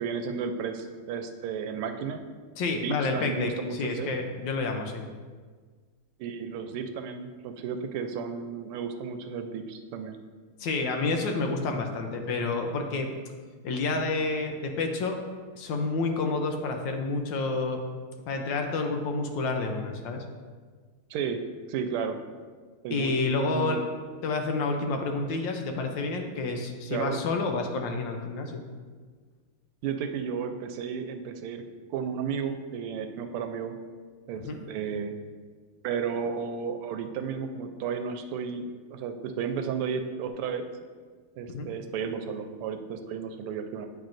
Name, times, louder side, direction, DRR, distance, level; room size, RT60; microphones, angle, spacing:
voice 1, 0.0-2.2 2.7-4.1 6.2-10.2 21.1-21.4 21.7-22.2 22.8-23.1 23.5-23.8 26.9-27.2 29.8-31.6 31.9-33.7 34.3-35.2 35.8-40.7 41.4-43.9, right 6 dB, 85° right, 6 dB, 1.5 m, -33 dB
voice 2, 2.6-5.0 10.6-13.1 13.6-15.2 15.5-17.8 18.3-20.2 22.9-23.8 24.2-28.6 34.4-34.6 41.5-41.7, left 3 dB, 70° left, 4 dB, 1.2 m, -29 dB
8.9 x 5.8 x 2.5 m, 1.5 s
omnidirectional pair, 2.4 m